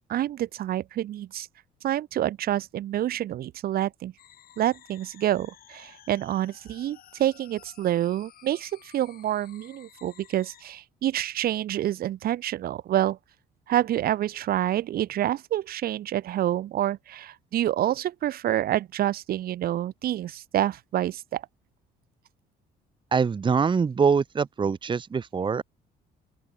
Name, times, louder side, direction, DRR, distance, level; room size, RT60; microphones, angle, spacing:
voice 1, 0.1-1.5 1.8-4.1 4.6-13.2 13.7-21.4, right 12 dB, 60° right, 1.9 m, -27 dB
sound 1, 4.2-10.6, left 11 dB, 60° left, 6.9 m, -54 dB
voice 2, 23.1-25.6, right 5 dB, 30° right, 1.4 m, -24 dB
open air
cardioid pair, 110°, 17 cm